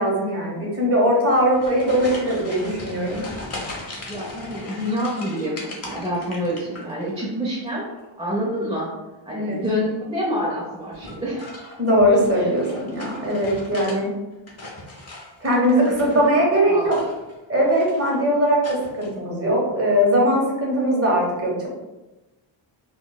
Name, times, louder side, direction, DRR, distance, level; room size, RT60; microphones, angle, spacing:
voice 1, 0.0-3.2 9.3-9.6 11.8-14.1 15.4-17.0 17.5-21.7, equal, 30° right, -3 dB, 1.1 m, -20 dB
sound 1, 1.2-7.2 7.5-8.1 9.5-9.9 10.9-14.0 14.3-16.4 16.8-17.4 17.7-18.2 18.6-19.1, left 2 dB, 30° left, 0.9 m, -38 dB
voice 2, 4.1-7.9 8.2-8.9 9.3-11.5 12.0-12.2 15.8-16.2 16.7-16.9, equal, 10° right, -5 dB, 0.7 m, -27 dB
3.6 x 2.4 x 2.2 m, 1.1 s
cardioid pair, 70°, 49 cm